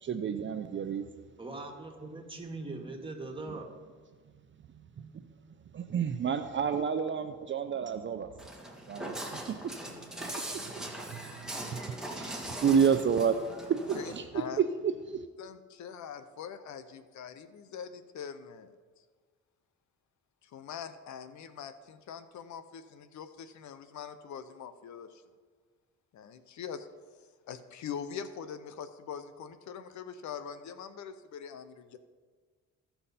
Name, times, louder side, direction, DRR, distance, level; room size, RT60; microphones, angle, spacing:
voice 1, 0.0-1.0 5.0-5.3 5.7-8.3 8.9-9.6 10.5-11.2 11.7-11.8 12.1-13.3 13.7-14.2 14.6-15.3, right 7 dB, 40° right, 8 dB, 0.5 m, -30 dB
voice 2, 1.4-3.7, right 2 dB, 15° right, 1 dB, 1.9 m, -41 dB
Walk footsteps, 8.4-14.2, right 1 dB, ahead, 1.7 m, -40 dB
voice 3, 13.9-14.6 15.4-18.7 20.4-25.2 26.1-26.9 27.5-32.0, left 7 dB, 70° left, 11 dB, 0.7 m, -43 dB
15.5 x 5.7 x 4.2 m, 1.5 s
cardioid pair, 90°, 30 cm